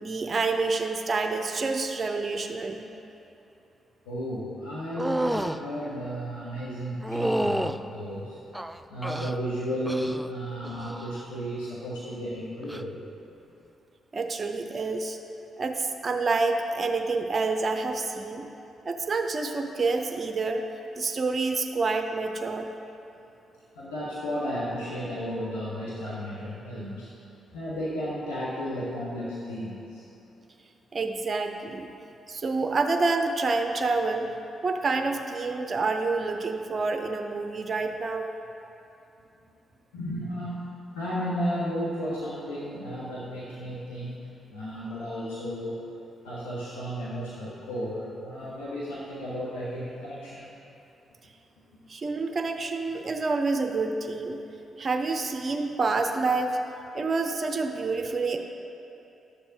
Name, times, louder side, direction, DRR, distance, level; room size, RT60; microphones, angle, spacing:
voice 1, 0.0-2.9 14.1-15.2 15.6-18.4 18.9-20.6 21.0-22.7 30.9-31.9 32.3-34.3 34.6-38.3 51.9-54.4 54.8-56.6 56.9-58.4, right 3 dB, 45° right, 5 dB, 0.6 m, -28 dB
voice 2, 4.0-8.4 8.9-13.0 23.7-27.1 27.5-30.0 39.9-40.6 40.9-45.8 46.2-50.5 56.9-57.1, equal, 90° left, -8 dB, 0.9 m, -33 dB
sound 1, 5.0-5.6 7.0-7.8 8.5-9.4 9.9-10.3 10.6-11.1 12.6-12.8, right 1 dB, 5° right, 0.3 m, -29 dB
11.0 x 6.9 x 2.7 m, 2.8 s
hypercardioid pair, 45°, 0 cm